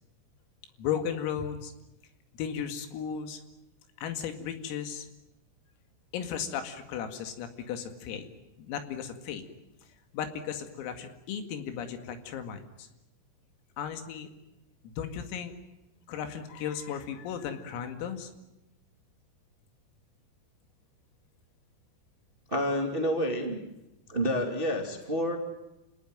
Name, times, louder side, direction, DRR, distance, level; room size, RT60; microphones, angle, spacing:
voice 1, 0.8-1.7 2.4-3.4 4.0-5.1 6.1-8.3 8.6-9.4 10.1-12.9 13.8-14.3 14.8-15.5 16.1-18.3, left 8 dB, 90° left, 7 dB, 4.8 m, -35 dB
voice 2, 22.5-23.6 24.1-25.4, equal, 25° right, 3 dB, 1.3 m, -28 dB
29.0 x 18.5 x 9.4 m, 0.94 s
omnidirectional pair, 5.9 m